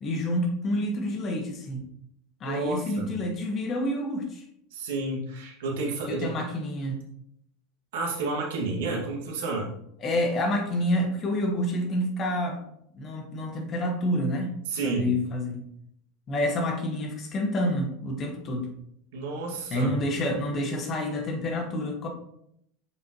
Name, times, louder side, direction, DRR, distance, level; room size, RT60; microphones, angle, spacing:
voice 1, 0.0-1.8 2.4-4.4 6.1-7.0 10.0-12.6 12.9-14.6 14.8-15.6 16.3-18.7 19.7-22.1, left 1 dB, 35° left, 2 dB, 1.3 m, -28 dB
voice 2, 2.4-3.1 4.7-6.4 7.9-9.7 14.7-15.1 19.1-20.0, right 3 dB, 65° right, -2 dB, 1.9 m, -30 dB
6.5 x 5.2 x 3.0 m, 0.74 s
hypercardioid pair, 85°, 0 cm